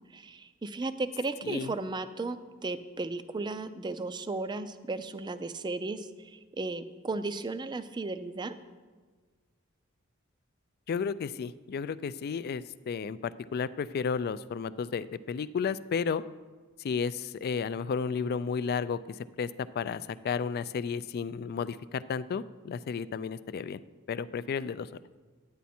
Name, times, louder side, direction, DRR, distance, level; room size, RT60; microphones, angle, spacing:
voice 1, 0.1-2.4 2.6-8.5, right 3 dB, 20° right, 11 dB, 0.4 m, -35 dB
voice 2, 1.4-1.7 10.9-16.2 16.8-23.8 24.1-24.9, left 6 dB, 50° left, 16 dB, 0.3 m, -33 dB
10.5 x 9.2 x 4.3 m, 1.4 s
head